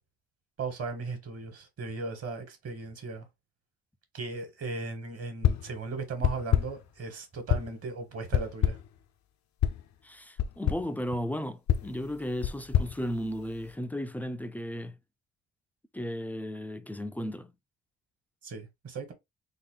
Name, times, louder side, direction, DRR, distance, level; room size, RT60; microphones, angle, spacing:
voice 1, 0.6-3.2 4.1-8.8 18.4-19.1, right 4 dB, 50° right, 1.4 m, -37 dB
sound 1, 5.4-5.8 6.2-6.9 7.5-7.9 8.3-9.0 9.6-9.9 10.4-10.9 11.7-13.7, left 10 dB, 65° left, 0.5 m, -28 dB
voice 2, 10.0-15.0 15.9-17.5, equal, 5° left, 0.3 m, -35 dB
3.7 x 2.1 x 3.8 m
cardioid pair, 90°, 30 cm